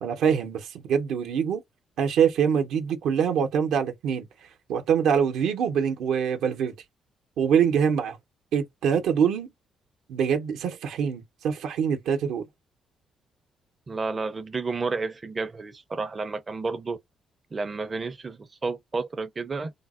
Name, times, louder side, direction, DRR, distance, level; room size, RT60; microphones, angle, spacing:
voice 1, 0.0-1.6 2.0-4.3 4.7-6.7 7.4-8.2 8.5-9.5 10.1-12.5, right 7 dB, 80° right, 0.7 m, -24 dB
voice 2, 13.9-17.0 17.5-19.7, right 4 dB, 30° right, 0.4 m, -31 dB
3.4 x 2.0 x 2.4 m
cardioid pair, 90°, 0 cm